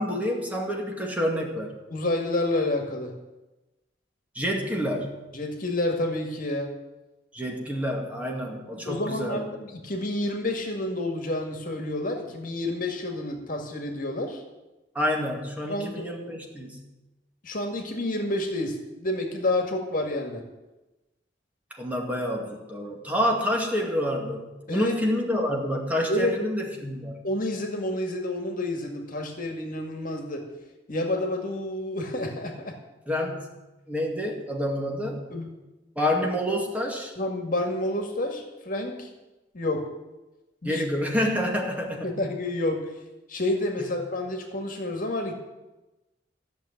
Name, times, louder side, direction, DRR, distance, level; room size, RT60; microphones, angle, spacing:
voice 1, 0.0-1.7 4.3-5.2 7.3-9.5 14.9-16.8 21.8-27.2 33.1-33.5 33.9-35.3 36.0-37.1 40.6-42.2 43.8-43.9, equal, 10° right, 0 dB, 2.2 m, -28 dB
voice 2, 1.9-3.1 5.3-6.7 8.9-14.4 15.7-16.1 17.4-20.4 24.7-25.0 26.1-26.3 27.2-30.5 30.9-32.8 35.3-35.5 37.2-39.1 39.5-39.9 40.6-40.8 42.0-42.9 43.3-45.3, left 1 dB, 50° left, 4 dB, 2.0 m, -29 dB
14.0 x 7.0 x 10.0 m, 1.1 s
head